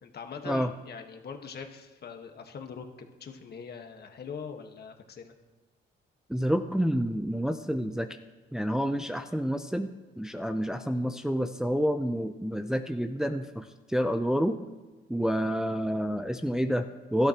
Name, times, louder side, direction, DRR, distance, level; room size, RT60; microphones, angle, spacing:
voice 1, 0.0-5.3, left 6 dB, 55° left, 4 dB, 1.5 m, -42 dB
voice 2, 6.3-8.1 8.5-9.9 10.2-14.6 15.1-17.3, equal, 5° right, 7 dB, 0.6 m, -28 dB
17.0 x 12.5 x 3.0 m, 1.3 s
cardioid pair, 90°, 20 cm